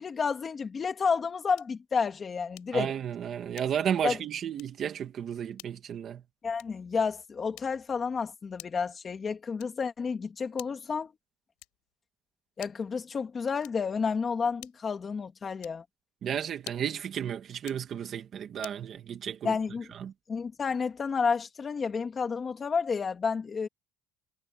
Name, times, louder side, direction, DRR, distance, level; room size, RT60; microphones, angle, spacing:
voice 1, 0.0-2.9 4.0-4.2 6.4-11.1 12.6-15.8 19.4-19.9 20.3-23.7, left 5 dB, 20° left, 2.7 m, -30 dB
sound 1, 1.5-1.9 2.6-2.9 3.5-4.0 4.5-4.8 5.5-5.8 6.5-6.9 7.5-8.0 8.6-8.9 9.6-9.9 10.5-11.0 11.6-11.9 12.5-12.9 13.6-14.0 14.6-15.0 15.6-15.9 16.6-17.0 17.6-17.9 18.6-18.9, left 24 dB, 80° left, 6.3 m, -50 dB
voice 2, 2.7-6.2 16.2-19.6 20.0-20.1, right 9 dB, 35° right, 2.5 m, -33 dB
cardioid pair, 170°, 0 cm